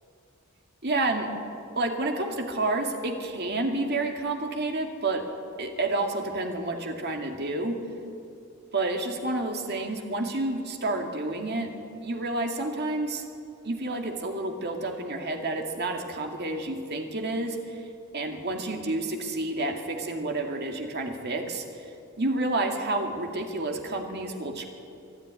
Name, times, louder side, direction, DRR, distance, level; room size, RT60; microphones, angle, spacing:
voice 1, 0.8-1.3 1.8-5.2 5.6-7.8 8.7-11.7 12.0-13.2 13.6-17.6 18.1-21.6 22.2-24.7, right 2 dB, 50° right, 3 dB, 2.3 m, -29 dB
24.0 x 11.5 x 9.8 m, 2.5 s
head